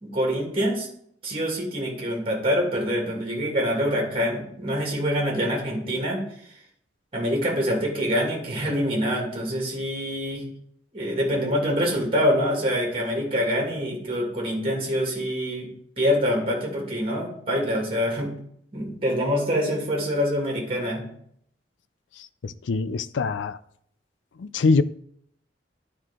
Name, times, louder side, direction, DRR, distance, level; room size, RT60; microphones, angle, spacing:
voice 1, 0.0-0.9 1.2-6.2 7.1-10.4 10.9-15.7 16.0-18.3 18.7-21.0, equal, 30° right, 2.2 m, -25 dB
voice 2, 22.2-23.6 24.4-24.8, left 4 dB, 85° left, 0.4 m, -24 dB
11.0 x 4.7 x 3.7 m
head